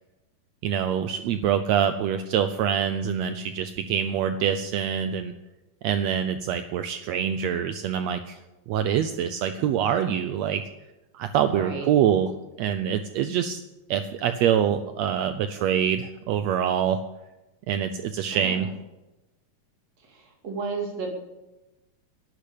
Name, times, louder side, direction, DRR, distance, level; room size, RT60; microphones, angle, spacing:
voice 1, 0.6-5.3 5.8-8.4 8.7-10.6 11.1-12.3 12.6-13.6 13.9-17.0 17.7-18.7, right 9 dB, 90° right, 10 dB, 1.5 m, -25 dB
voice 2, 11.4-11.9 18.3-18.7 20.0-21.1, right 4 dB, 50° right, 1 dB, 3.7 m, -33 dB
11.0 x 10.0 x 8.2 m, 1.0 s
omnidirectional pair, 3.8 m